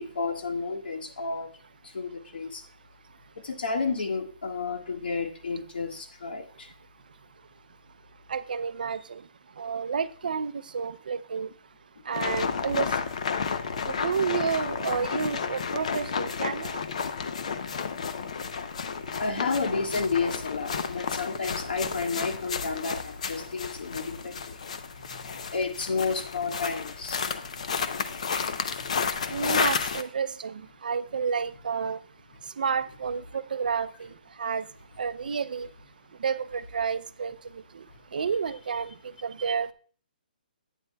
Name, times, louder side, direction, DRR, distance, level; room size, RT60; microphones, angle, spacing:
voice 1, 0.0-1.5 1.9-2.6 3.4-6.7 19.2-24.6 25.1-27.3 28.4-28.9, left 4 dB, 85° left, 5 dB, 1.6 m, -31 dB
voice 2, 8.3-9.2 9.6-11.5 12.1-12.9 13.9-16.8 29.3-32.0 32.6-34.1 34.4-34.6 35.0-35.7 36.2-37.3 37.7-37.8 38.1-38.9 39.2-39.7, right 6 dB, 65° right, 14 dB, 0.5 m, -30 dB
sound 1, 12.1-30.0, left 6 dB, 45° left, 0.6 m, -32 dB
11.0 x 9.2 x 2.2 m, 0.43 s
hypercardioid pair, 180°, 5 cm